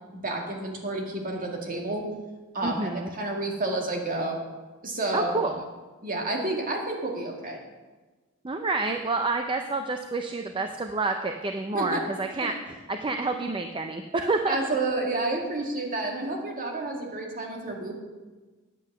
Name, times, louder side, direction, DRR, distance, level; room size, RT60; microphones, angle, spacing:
voice 1, 0.1-2.0 2.5-4.4 4.8-5.4 6.0-7.6 11.7-12.1 12.4-12.5 14.5-18.0, right 2 dB, 40° right, 1 dB, 2.1 m, -30 dB
voice 2, 2.6-3.1 5.1-5.6 8.4-14.6, right 3 dB, 25° right, 6 dB, 0.5 m, -28 dB
10.0 x 8.4 x 6.7 m, 1.3 s
head